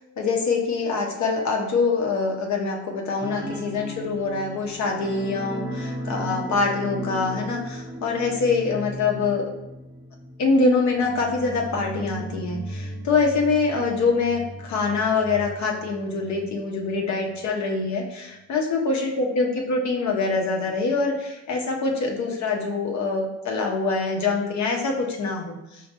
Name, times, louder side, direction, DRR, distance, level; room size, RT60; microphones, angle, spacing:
voice 1, 0.2-9.4 10.4-25.8, left 4 dB, 65° left, 0 dB, 1.0 m, -24 dB
sound 1, 3.2-16.5 16.8-17.0 17.3-17.4, equal, 10° right, 0.4 m, -36 dB
5.4 x 2.8 x 2.9 m, 0.97 s
cardioid pair, 90°, 30 cm